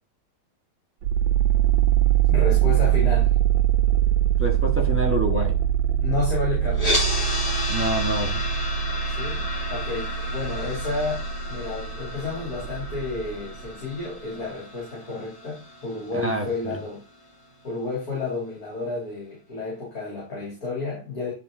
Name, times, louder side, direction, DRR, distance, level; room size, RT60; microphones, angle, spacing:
sound 1, 1.0-13.7, right 10 dB, 75° right, 1.3 m, -23 dB
voice 1, 2.2-3.3 6.0-7.0 9.1-11.2 11.5-17.0 17.6-21.3, left 3 dB, 45° left, 3.1 m, -31 dB
voice 2, 4.4-5.6 7.7-8.4 16.2-16.8, right 1 dB, 10° right, 1.0 m, -27 dB
sound 2, 6.7-16.8, left 1 dB, 20° left, 1.3 m, -32 dB
10.0 x 3.8 x 3.7 m
omnidirectional pair, 2.3 m